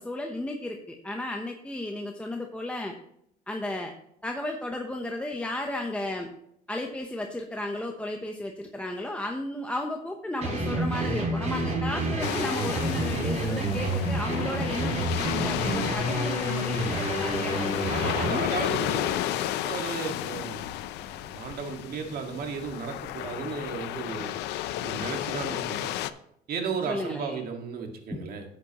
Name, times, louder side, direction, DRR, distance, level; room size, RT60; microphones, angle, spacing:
voice 1, 0.0-3.0 3.5-3.9 4.2-6.3 6.7-18.6 26.9-27.4, left 1 dB, 5° left, 2 dB, 0.9 m, -34 dB
sound 1, 10.4-18.3, right 1 dB, 40° right, 3.7 m, -29 dB
sound 2, 12.2-26.1, left 13 dB, 90° left, 0.5 m, -32 dB
voice 2, 17.9-24.4 24.8-25.9 26.5-28.4, right 5 dB, 60° right, 3 dB, 1.9 m, -35 dB
11.5 x 8.0 x 3.0 m, 0.73 s
cardioid pair, 110°, 17 cm